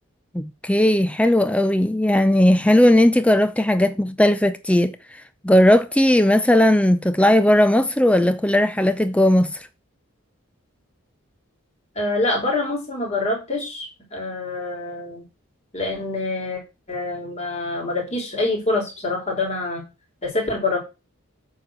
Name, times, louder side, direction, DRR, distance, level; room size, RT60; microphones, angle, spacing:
voice 1, 0.3-5.0 5.4-9.5, left 1 dB, 5° left, 0.5 m, -17 dB
voice 2, 12.0-15.2 15.7-16.6 16.9-19.8 20.2-20.8, left 2 dB, 30° left, 3.9 m, -25 dB
8.7 x 4.6 x 6.5 m
head